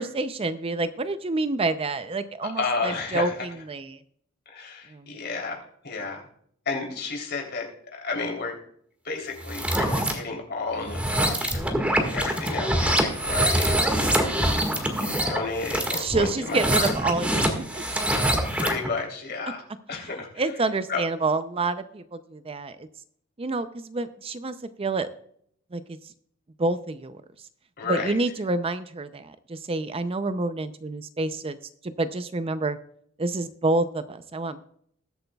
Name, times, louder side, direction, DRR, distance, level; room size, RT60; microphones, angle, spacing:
voice 1, 0.0-4.0 4.9-5.1 14.4-15.2 15.9-18.0 20.4-22.9 23.4-25.1 25.7-26.1 26.6-27.2 27.8-31.6 31.8-32.8 33.2-34.6, right 3 dB, 30° right, 12 dB, 0.5 m, -28 dB
voice 2, 2.4-3.3 4.4-6.3 6.6-8.6 9.0-11.7 12.1-13.9 14.3-16.9 18.5-19.6 19.9-20.4 20.9-21.0 27.8-28.1, left 4 dB, 55° left, 1 dB, 3.3 m, -32 dB
sound 1, 9.4-10.1 10.8-18.9, right 1 dB, 5° right, 1.7 m, -25 dB
20.5 x 7.9 x 2.3 m, 0.66 s
head